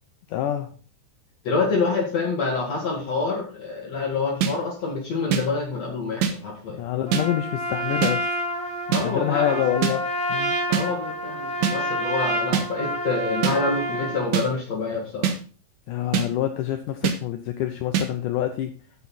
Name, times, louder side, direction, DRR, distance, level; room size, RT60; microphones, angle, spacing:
voice 1, 0.3-0.7 6.7-8.3 8.9-10.6 15.9-18.7, left 11 dB, 75° left, 7 dB, 2.0 m, -26 dB
voice 2, 1.4-6.8 8.9-9.6 10.7-15.3, left 4 dB, 50° left, -1 dB, 2.6 m, -27 dB
sound 1, 4.4-4.5 5.3-5.4 6.2-6.3 7.1-7.2 8.0-8.1 8.9-9.0 9.8-9.9 10.7-10.8 11.6-11.8 12.5-12.7 13.4-13.6 14.3-14.5 15.2-15.4 16.1-16.3 17.0-17.2 17.9-18.1, right 7 dB, 75° right, 2.9 m, -22 dB
Trumpet, 7.1-14.3, equal, ahead, 2.3 m, -28 dB
14.0 x 5.6 x 4.2 m, 0.39 s
omnidirectional pair, 4.2 m